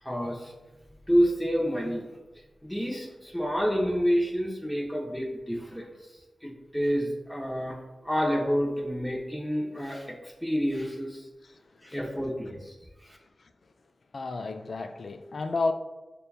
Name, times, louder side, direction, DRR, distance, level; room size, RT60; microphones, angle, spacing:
voice 1, 0.0-0.5 1.1-2.1 2.6-6.1 6.4-11.3 11.8-12.7 13.0-13.2, equal, 5° left, -3 dB, 0.6 m, -29 dB
voice 2, 11.4-12.0 13.4-13.5 14.1-15.7, left 3 dB, 60° left, 8 dB, 0.3 m, -32 dB
6.7 x 2.2 x 2.3 m, 1.1 s
cardioid pair, 60°, 0 cm